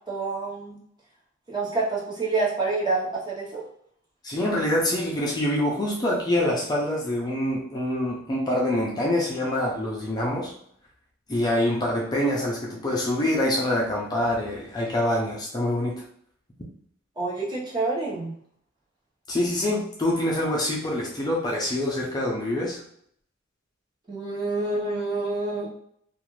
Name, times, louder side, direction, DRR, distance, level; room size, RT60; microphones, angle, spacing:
voice 1, 0.1-0.8 1.5-3.6 17.2-18.3 24.1-25.7, right 3 dB, 20° right, -5 dB, 0.8 m, -27 dB
voice 2, 4.2-10.5 11.3-16.0 19.3-22.8, left 1 dB, 20° left, -3 dB, 0.4 m, -25 dB
2.4 x 2.4 x 3.0 m, 0.66 s
head